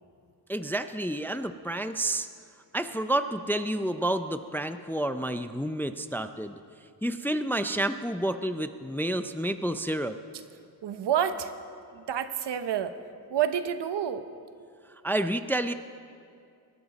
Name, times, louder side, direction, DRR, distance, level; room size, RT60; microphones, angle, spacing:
voice 1, 0.5-2.3 2.7-6.6 7.0-10.2 15.0-15.7, right 1 dB, 5° left, 10 dB, 0.4 m, -29 dB
voice 2, 10.8-11.5 11.9-13.0 13.3-14.3, right 9 dB, 75° right, 11 dB, 0.9 m, -28 dB
21.0 x 12.0 x 4.1 m, 2.3 s
wide cardioid pair, 110°, 42 cm